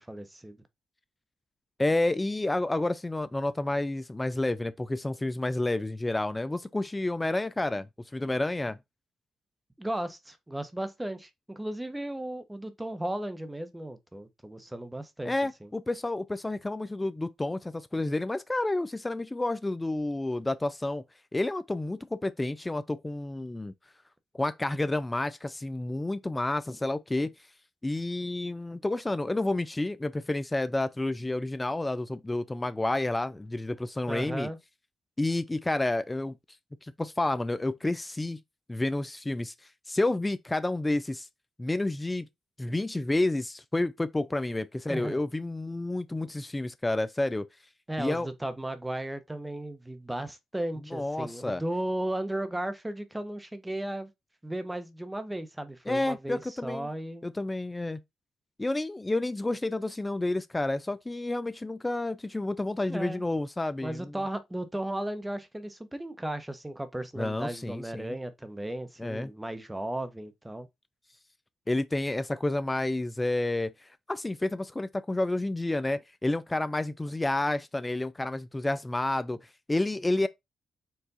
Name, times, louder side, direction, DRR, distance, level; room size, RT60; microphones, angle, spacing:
voice 1, 0.1-0.6 9.8-15.3 15.6-15.7 34.1-34.6 44.9-45.2 47.9-54.1 54.4-57.3 62.9-63.2 63.8-70.7, right 1 dB, 10° right, 0.9 m, -35 dB
voice 2, 1.8-7.9 8.1-8.8 15.2-21.0 21.3-23.7 24.4-27.3 27.8-34.5 35.2-36.3 36.8-38.4 38.7-39.5 39.9-41.3 41.6-42.3 42.6-47.5 48.0-48.3 50.9-51.6 55.9-56.9 57.2-58.0 58.6-64.1 67.2-68.2 69.0-69.3 71.7-79.4 79.7-80.3, left 2 dB, 20° left, 0.4 m, -30 dB
4.6 x 2.4 x 4.0 m
supercardioid pair, 50°, 0 cm